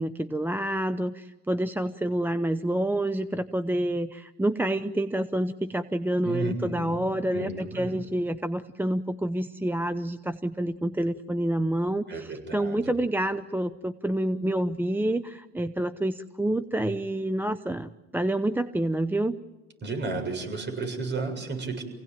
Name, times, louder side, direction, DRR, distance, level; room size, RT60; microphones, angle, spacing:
voice 1, 0.0-19.4, right 1 dB, 5° right, 11 dB, 0.7 m, -28 dB
voice 2, 6.2-7.1 7.3-8.0 12.1-12.9 19.8-21.9, right 3 dB, 35° right, 4 dB, 7.2 m, -33 dB
27.5 x 17.5 x 9.0 m, 1.2 s
supercardioid pair, 85°, 32 cm